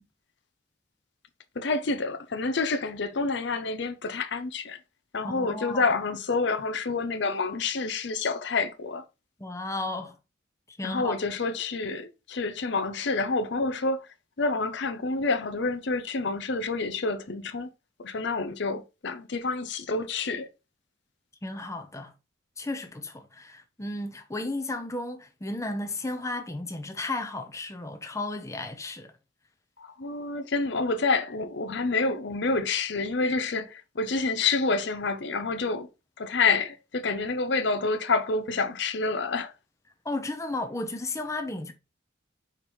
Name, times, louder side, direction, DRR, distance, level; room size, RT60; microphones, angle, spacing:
voice 1, 1.6-4.8 5.1-9.0 10.8-14.1 14.4-17.7 18.0-20.5 29.8-35.9 36.2-39.5, left 3 dB, 60° left, 0.7 m, -28 dB
voice 2, 5.2-6.0 9.4-10.2 10.7-11.2 21.4-22.1 22.6-29.1 40.0-41.7, left 2 dB, 15° left, 0.7 m, -34 dB
5.2 x 4.4 x 4.2 m
head